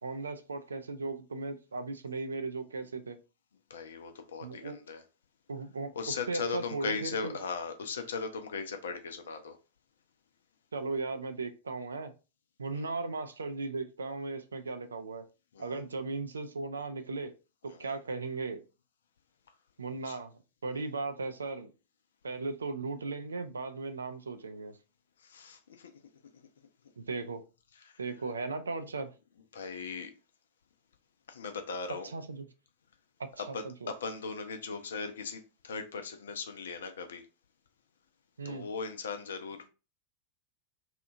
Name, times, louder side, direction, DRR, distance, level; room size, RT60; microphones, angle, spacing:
voice 1, 0.0-3.2 4.4-4.8 5.5-5.9 6.3-7.4 10.7-12.1 12.6-15.3 15.6-17.3 17.6-18.6 19.8-21.7 22.2-24.8 27.0-27.4 28.0-29.1 32.1-32.5 33.2-33.9 38.4-38.7, right 3 dB, 75° right, 0.4 m, -37 dB
voice 2, 3.7-5.0 5.9-9.6 12.7-12.9 15.5-15.8 17.6-17.9 20.0-20.2 20.7-20.9 25.2-25.9 27.8-28.0 29.5-30.1 31.3-32.1 33.4-37.3 38.4-39.6, left 5 dB, 65° left, 0.5 m, -38 dB
2.8 x 2.3 x 2.5 m
figure-of-eight pair, 90°, 0 cm